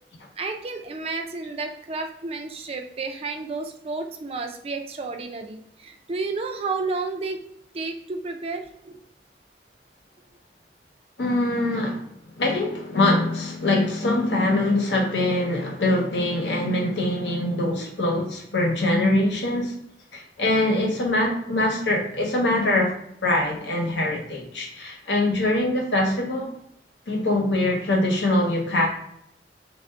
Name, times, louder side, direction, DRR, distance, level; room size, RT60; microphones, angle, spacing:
voice 1, 0.4-7.4 7.7-9.0, right 3 dB, 35° right, 4 dB, 0.4 m, -31 dB
voice 2, 11.2-12.1 12.4-19.7 20.1-22.9 23.2-26.6 27.1-28.9, left 1 dB, 90° left, -1 dB, 1.0 m, -23 dB
3.4 x 2.5 x 3.4 m, 0.74 s
head